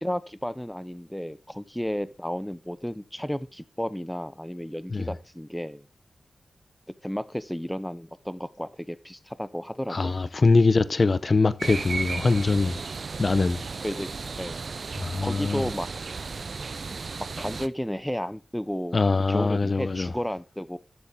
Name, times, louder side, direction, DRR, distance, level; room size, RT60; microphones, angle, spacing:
voice 1, 0.0-5.8 7.0-10.2 13.8-14.1 14.4-14.6 15.2-16.0 17.4-19.0 19.3-20.8, equal, 5° left, 0.7 m, -32 dB
voice 2, 9.9-12.8 13.2-13.6 15.0-15.6 18.9-20.1, left 3 dB, 45° left, 0.7 m, -23 dB
sound 1, 11.6-17.7, right 4 dB, 60° right, 0.6 m, -34 dB
12.0 x 7.1 x 3.7 m
cardioid pair, 65°, 0 cm